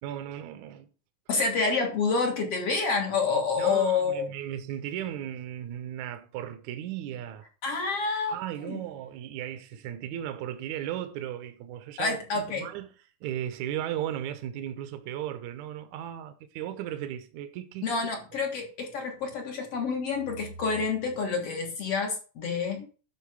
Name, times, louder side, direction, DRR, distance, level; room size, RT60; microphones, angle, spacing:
voice 1, 0.0-0.9 1.3-1.5 3.6-7.5 8.3-12.9 13.2-17.9, right 11 dB, 70° right, 2.1 m, -36 dB
voice 2, 1.3-4.3 7.6-8.4 8.7-8.8 12.0-12.7 17.8-22.9, left 4 dB, 50° left, 2.2 m, -28 dB
11.5 x 4.6 x 6.3 m
omnidirectional pair, 4.1 m